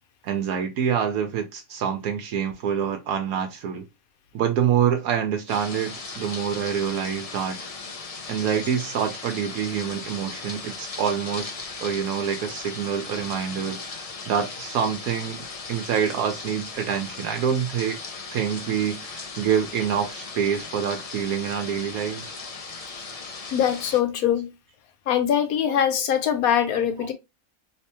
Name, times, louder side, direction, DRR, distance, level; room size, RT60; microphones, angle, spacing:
voice 1, 0.2-3.8 4.3-7.6 8.3-11.5 11.8-18.0 18.3-22.4 25.7-25.8 27.0-27.1, right 8 dB, 85° right, 1.2 m, -26 dB
sound 1, 5.5-24.0, left 4 dB, 45° left, 0.4 m, -37 dB
voice 2, 23.5-24.5 25.1-27.1, left 9 dB, 80° left, 1.2 m, -22 dB
3.3 x 3.2 x 2.9 m
omnidirectional pair, 1.5 m